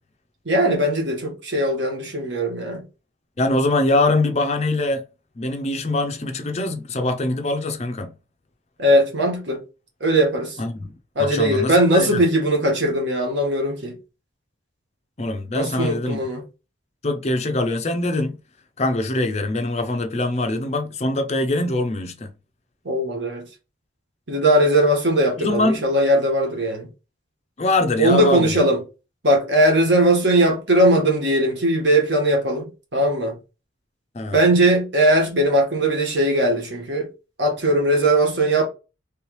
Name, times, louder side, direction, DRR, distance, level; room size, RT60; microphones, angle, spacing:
voice 1, 0.4-2.8 8.8-9.6 10.0-10.6 11.1-14.0 15.5-16.4 22.8-23.4 24.3-26.9 28.0-28.8 29.2-33.4 34.3-37.1 37.4-38.7, right 1 dB, 65° right, 1.4 m, -19 dB
voice 2, 3.4-5.0 5.4-8.1 10.6-10.9 11.2-12.2 15.2-16.2 17.0-18.4 18.8-22.3 25.4-25.8 27.6-28.6 34.1-34.4, left 2 dB, 35° left, 0.5 m, -23 dB
3.3 x 3.1 x 3.0 m
head